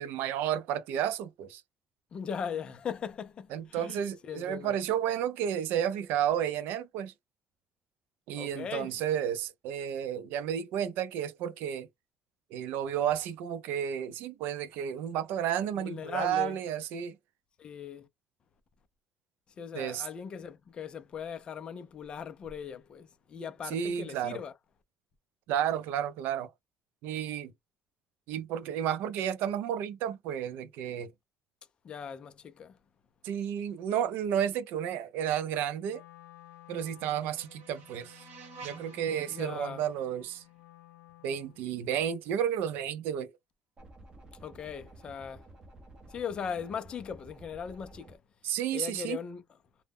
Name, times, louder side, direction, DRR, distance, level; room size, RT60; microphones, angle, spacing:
voice 1, 0.0-1.6 3.5-7.1 8.3-11.9 12.5-17.1 19.7-20.1 23.7-24.4 25.5-26.5 27.0-27.5 28.3-31.1 33.2-36.0 36.7-38.1 38.6-40.4 41.2-43.3 48.4-49.2, right 9 dB, 80° right, 0.4 m, -32 dB
voice 2, 2.1-4.8 8.4-8.9 15.8-16.6 17.6-18.1 19.6-24.5 31.8-32.8 39.3-39.8 44.4-45.5 46.1-48.2 48.7-49.4, left 7 dB, 30° left, 0.3 m, -39 dB
Wind instrument woodwind instrument, 35.9-41.9, left 15 dB, 90° left, 0.5 m, -55 dB
sound 1, 36.3-41.3, right 4 dB, 60° right, 0.8 m, -53 dB
sound 2, 43.8-48.2, right 1 dB, 20° right, 0.6 m, -52 dB
2.0 x 2.0 x 3.4 m
cardioid pair, 180°, 3 cm